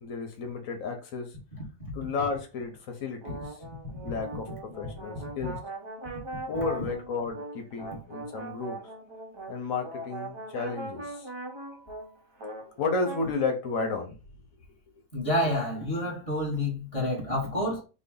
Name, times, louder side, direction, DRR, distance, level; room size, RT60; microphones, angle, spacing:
voice 1, 0.0-1.3 1.9-3.4 4.0-5.5 6.5-8.8 9.5-12.0 12.6-14.1, left 4 dB, 75° left, 1.2 m, -33 dB
voice 2, 1.5-1.9 15.1-17.8, left 1 dB, 25° left, 1.2 m, -29 dB
sound 1, 3.2-13.3, right 2 dB, 30° right, 0.6 m, -40 dB
3.8 x 2.1 x 3.7 m
omnidirectional pair, 1.4 m